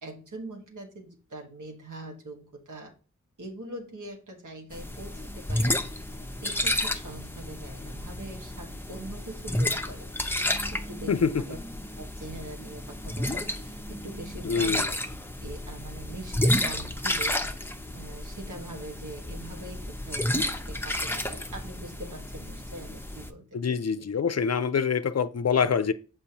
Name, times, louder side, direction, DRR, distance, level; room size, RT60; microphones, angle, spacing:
voice 1, 0.0-2.9 3.4-5.8 6.4-11.6 12.0-15.0 15.4-17.4 17.9-24.1, right 1 dB, 85° right, 1.5 m, -43 dB
sound 1, 4.7-23.3, left 1 dB, 5° left, 0.7 m, -31 dB
voice 2, 11.1-11.4 14.4-14.9 23.5-25.9, left 6 dB, 55° left, 0.5 m, -25 dB
6.8 x 5.4 x 2.9 m
cardioid pair, 40°, 30 cm